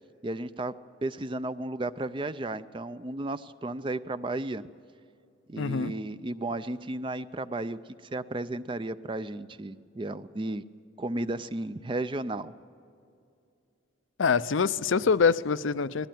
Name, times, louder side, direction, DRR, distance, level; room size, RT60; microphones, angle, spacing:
voice 1, 0.2-0.7 1.0-4.6 5.5-7.8 8.1-10.6 11.0-12.5, right 2 dB, 25° right, 0.4 m, -33 dB
voice 2, 5.6-6.0 14.2-16.1, left 5 dB, 75° left, 0.5 m, -25 dB
20.0 x 16.0 x 9.2 m
head